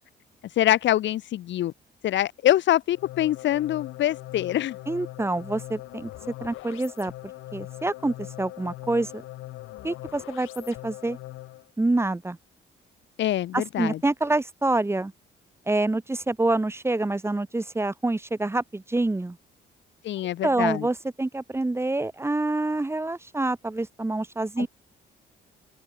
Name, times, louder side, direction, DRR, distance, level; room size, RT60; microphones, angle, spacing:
voice 1, 0.6-1.7 2.0-4.8 13.2-14.0 20.0-20.9 24.6-24.7, left 13 dB, 65° left, 0.7 m, -24 dB
sound 1, 2.9-11.7, left 16 dB, 90° left, 1.2 m, -41 dB
voice 2, 4.9-6.1 6.4-7.1 7.5-9.2 9.8-11.2 11.8-12.4 13.5-15.1 15.7-19.4 20.4-24.7, right 2 dB, 10° right, 0.9 m, -26 dB
open air
cardioid pair, 90°, 20 cm